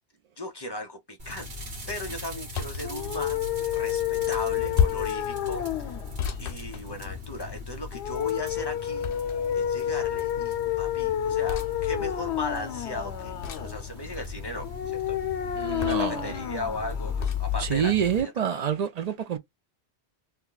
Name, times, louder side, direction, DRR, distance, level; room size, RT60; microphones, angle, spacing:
voice 1, 0.4-1.5 1.9-3.4 3.7-5.6 6.4-9.1 9.5-15.2 15.8-18.6, left 1 dB, 25° left, 0.7 m, -37 dB
sound 1, 1.2-18.2, left 5 dB, 75° right, 1.6 m, -38 dB
sound 2, 2.5-2.9 4.7-5.2 6.2-7.4 9.0-9.6 11.5-11.7 13.4-13.8 15.8-16.2 17.2-17.4, left 8 dB, 60° left, 0.8 m, -30 dB
sound 3, 2.8-17.8, left 11 dB, 85° left, 0.9 m, -30 dB
voice 2, 15.6-16.3 17.6-19.4, right 8 dB, 55° right, 0.4 m, -27 dB
2.8 x 2.2 x 3.9 m
omnidirectional pair, 1.1 m